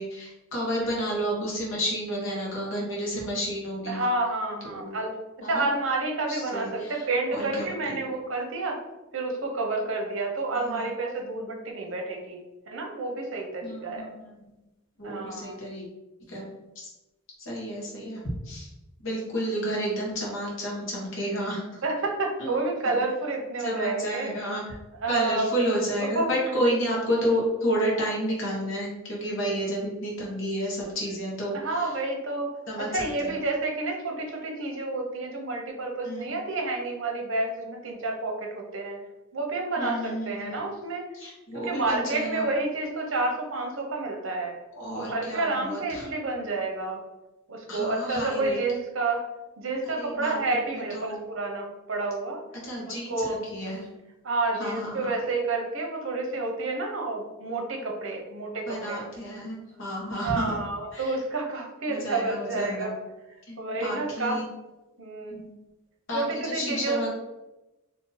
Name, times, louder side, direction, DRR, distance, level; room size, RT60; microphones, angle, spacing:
voice 1, 0.0-4.0 4.7-5.0 5.4-5.7 6.3-7.0 7.3-8.0 10.5-10.8 13.6-14.3 15.0-15.9 16.3-16.5 16.7-16.9 17.4-18.7 19.0-21.8 22.4-22.5 22.8-23.0 23.6-24.6 25.1-31.9 32.7-33.4 36.0-36.3 39.8-40.6 41.1-42.5 44.7-46.1 47.7-48.6 49.9-50.3 50.7-51.2 52.6-53.9 54.6-55.1 58.7-60.6 60.9-61.2 61.9-62.9 63.5-64.4 65.3-65.5 66.1-67.1, equal, 65° left, -3 dB, 1.2 m, -31 dB
voice 2, 3.9-5.1 5.5-8.8 9.1-12.4 12.7-14.1 15.0-15.6 21.8-24.3 25.0-25.5 26.1-26.3 31.5-32.5 32.8-39.0 39.3-41.0 41.5-44.6 44.9-47.0 47.5-49.2 49.6-52.4 53.1-53.4 54.2-59.0 60.2-62.9 63.6-64.4 65.0-65.4 66.1-67.1, right 2 dB, 70° right, 2 dB, 0.8 m, -29 dB
2.9 x 2.7 x 3.9 m, 1.0 s
head